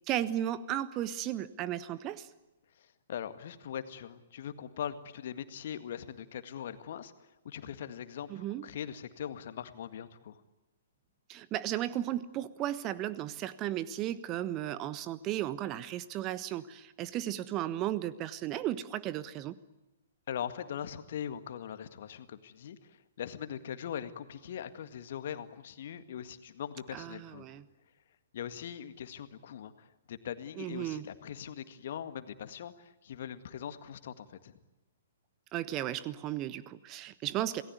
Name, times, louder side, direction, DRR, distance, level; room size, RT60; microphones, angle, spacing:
voice 1, 0.1-2.3 8.3-8.7 11.3-19.6 26.9-27.6 30.6-31.1 35.5-37.6, right 12 dB, 25° right, 15 dB, 1.3 m, -35 dB
voice 2, 2.8-7.1 7.4-10.4 20.3-27.6 28.3-34.6, left 9 dB, 50° left, 10 dB, 1.9 m, -41 dB
27.5 x 19.0 x 9.6 m, 1.0 s
figure-of-eight pair, 115°, 0 cm